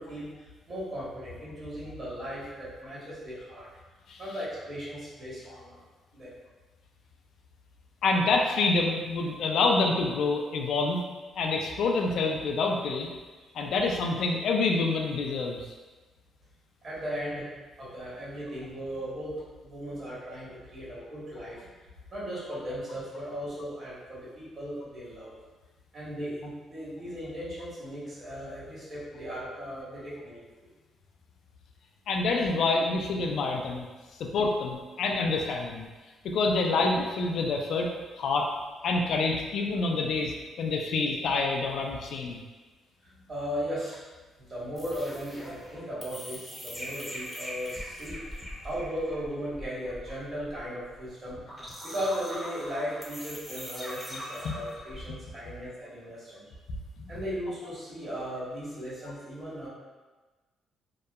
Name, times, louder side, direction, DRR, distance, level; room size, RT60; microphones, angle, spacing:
voice 1, 0.0-3.7 4.2-5.8 6.1-6.3 13.4-13.5 16.8-17.5 17.8-25.3 25.9-30.7 43.0-44.0 44.4-51.4 51.8-56.5 57.1-59.7, equal, 45° right, -8 dB, 1.2 m, -37 dB
voice 2, 8.0-11.0 11.4-13.1 13.5-15.6 32.1-33.9 34.2-35.9 36.2-37.9 38.2-38.5 38.8-40.3 40.6-42.4 54.4-54.6, left 3 dB, 70° left, 2 dB, 0.3 m, -27 dB
sound 1, 44.8-55.0, equal, 5° left, 0.6 m, -41 dB
2.7 x 2.1 x 2.3 m, 1.3 s
cardioid pair, 90°, 0 cm